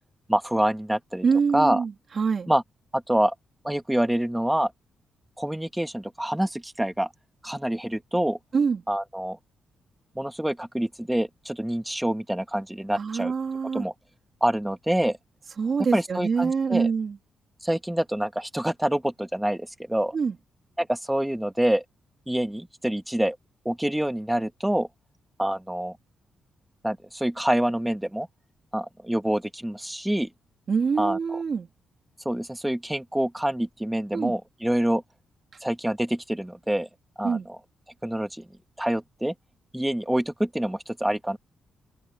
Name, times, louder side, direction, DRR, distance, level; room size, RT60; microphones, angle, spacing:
voice 1, 0.3-1.3 1.5-1.8 2.5-2.6 2.9-3.3 3.6-4.7 5.4-7.1 7.4-8.4 8.9-9.4 10.2-13.3 13.7-13.9 14.4-15.2 15.9-16.9 17.6-20.2 20.8-21.8 22.3-23.4 23.7-24.9 25.4-26.0 26.8-28.3 28.7-30.3 31.0-31.4 32.3-35.0 35.6-36.9 37.2-37.6 38.0-38.5 38.8-39.3 39.7-41.4, right 1 dB, 5° right, 1.9 m, -26 dB
voice 2, 1.2-2.5 8.5-8.8 13.0-13.8 15.6-17.2 20.1-20.3 30.7-31.7 34.1-34.3 37.2-37.5, right 5 dB, 50° right, 3.1 m, -25 dB
cardioid pair, 75°, 0 cm